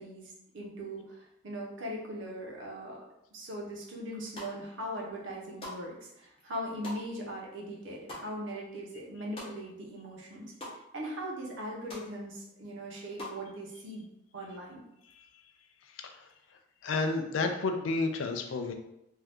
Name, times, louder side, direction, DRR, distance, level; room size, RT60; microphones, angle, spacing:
voice 1, 0.0-3.0 3.3-14.8, equal, 70° right, -1 dB, 0.8 m, -40 dB
sound 1, 4.1-4.8 5.2-9.9 10.2-10.8 11.2-11.3 11.5-12.1 12.5-13.4, left 1 dB, 30° left, 0.7 m, -45 dB
voice 2, 16.0-16.3 16.8-18.7, left 3 dB, 80° left, 5 dB, 0.4 m, -31 dB
2.7 x 2.3 x 3.4 m, 0.81 s
head